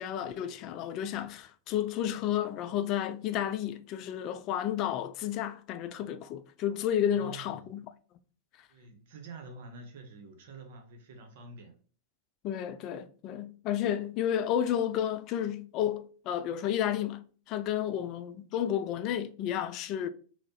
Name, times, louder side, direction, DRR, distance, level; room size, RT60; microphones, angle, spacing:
voice 1, 0.0-7.9 12.4-20.1, left 10 dB, 40° left, 0.3 m, -32 dB
voice 2, 7.1-7.5 8.7-11.7, right 3 dB, 55° right, 0.8 m, -47 dB
4.2 x 2.0 x 2.9 m
figure-of-eight pair, 90°, 0 cm